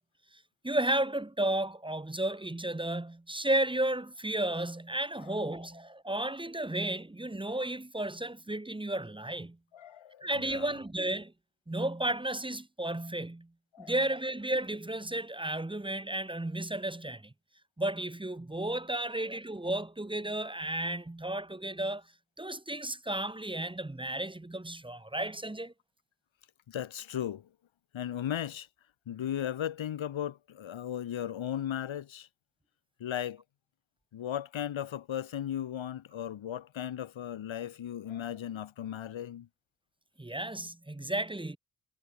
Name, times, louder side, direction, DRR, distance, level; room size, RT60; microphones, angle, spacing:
voice 1, 0.6-9.6 10.2-11.3 11.7-13.5 13.8-17.3 17.8-22.0 22.4-25.7 40.2-41.6, right 1 dB, 10° right, 1.3 m, -33 dB
voice 2, 5.2-5.6 9.7-10.7 13.7-13.9 18.9-19.0 26.7-27.5 27.9-28.7 29.1-32.3 33.0-33.4 34.1-39.5, left 10 dB, 85° left, 1.4 m, -36 dB
wide cardioid pair, 150°, 46 cm